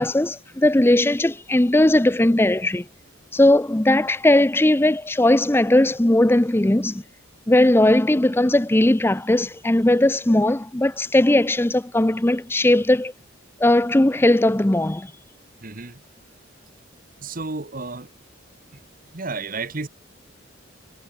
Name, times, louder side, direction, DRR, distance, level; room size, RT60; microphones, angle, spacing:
voice 1, 0.0-2.8 3.3-7.0 7.5-13.1 13.6-15.1, left 1 dB, 10° left, 0.5 m, -18 dB
voice 2, 15.6-16.0 17.2-18.1 18.7-18.8 19.1-19.9, right 3 dB, 45° right, 1.3 m, -32 dB
head